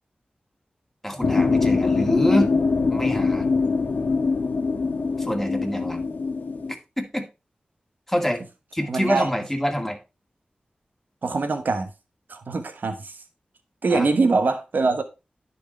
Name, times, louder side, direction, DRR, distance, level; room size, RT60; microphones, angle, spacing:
voice 1, 1.0-2.5 2.9-3.5 5.2-6.0 7.0-7.2 8.1-8.4 8.7-10.0 13.9-14.1, equal, 10° left, 2.1 m, -26 dB
sound 1, 1.2-6.7, left 4 dB, 75° left, 1.4 m, -23 dB
voice 2, 8.9-9.3 11.2-11.9 12.3-13.2 13.8-15.0, right 3 dB, 80° right, 1.3 m, -23 dB
10.5 x 4.7 x 4.3 m
cardioid pair, 50°, 3 cm